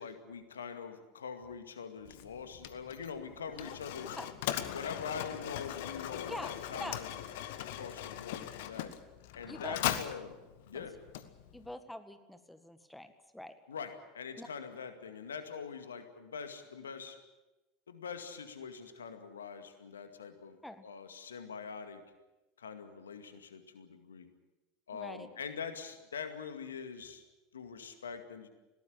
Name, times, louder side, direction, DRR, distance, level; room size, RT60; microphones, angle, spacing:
voice 1, 0.0-4.2 4.7-7.1 7.6-8.9 9.4-10.3 10.7-10.9 13.7-17.2 17.9-22.0 22.6-24.3 24.9-27.2 27.5-28.5, left 6 dB, 80° left, 8 dB, 2.2 m, -44 dB
Mechanisms, 2.0-11.7, left 12 dB, 65° left, 1.4 m, -40 dB
voice 2, 6.3-7.0 9.4-9.8 10.7-10.9 11.5-13.5 14.4-14.5 20.6-20.8 24.9-25.3, left 1 dB, 5° left, 9 dB, 1.8 m, -44 dB
21.0 x 18.0 x 8.7 m, 1.1 s
figure-of-eight pair, 75°, 0 cm